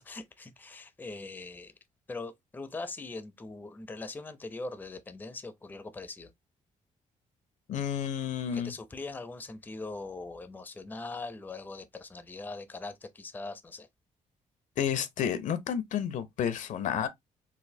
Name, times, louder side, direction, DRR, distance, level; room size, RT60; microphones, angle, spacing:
voice 1, 0.0-1.7 2.1-6.3 8.5-13.9, left 3 dB, 15° left, 0.4 m, -41 dB
voice 2, 7.7-8.7 14.8-17.1, left 8 dB, 70° left, 0.5 m, -31 dB
4.0 x 2.5 x 2.6 m
cardioid pair, 125°, 13 cm